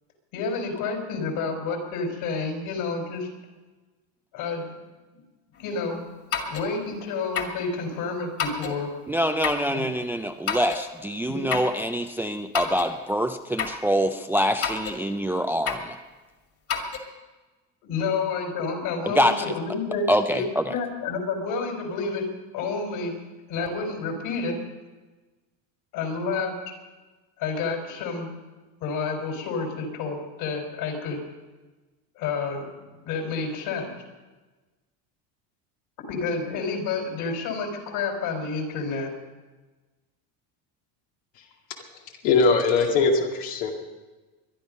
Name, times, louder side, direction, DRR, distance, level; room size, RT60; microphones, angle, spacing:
voice 1, 0.3-3.3 4.3-4.7 5.1-5.2 5.5-6.0 6.4-8.9 9.7-9.9 11.3-11.5 17.8-22.3 22.5-23.1 23.5-24.6 25.9-26.7 27.4-28.4 28.8-31.2 32.2-32.7 32.9-33.9 36.0-39.1, left 4 dB, 65° left, 3 dB, 4.7 m, -29 dB
sound 1, 6.3-6.7 7.3-7.6 8.4-8.8 9.4-9.7 10.5-10.8 11.5-11.8 12.5-12.9 13.6-13.8 14.6-15.0 15.6-15.9 16.7-17.0, left 7 dB, 35° left, 2.2 m, -29 dB
voice 2, 9.1-16.0 19.1-19.4 20.1-20.7, equal, 5° right, 7 dB, 0.4 m, -25 dB
voice 3, 41.9-43.7, left 4 dB, 80° left, 0 dB, 2.4 m, -22 dB
22.0 x 11.5 x 5.3 m, 1.2 s
cardioid pair, 140°, 39 cm